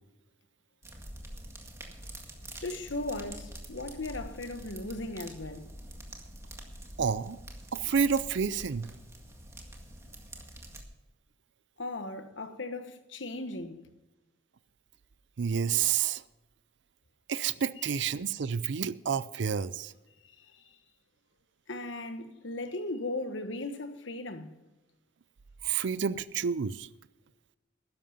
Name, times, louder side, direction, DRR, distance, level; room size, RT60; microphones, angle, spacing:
sound 1, 0.8-10.8, right 1 dB, 15° right, 1.9 m, -46 dB
voice 1, 2.6-5.7 11.8-13.8 17.8-17.9 21.7-24.6, left 2 dB, 75° left, 1.2 m, -37 dB
voice 2, 7.0-7.4 7.7-8.9 15.4-16.2 17.3-19.9 25.6-26.9, right 7 dB, 70° right, 0.5 m, -29 dB
13.0 x 10.5 x 5.6 m
head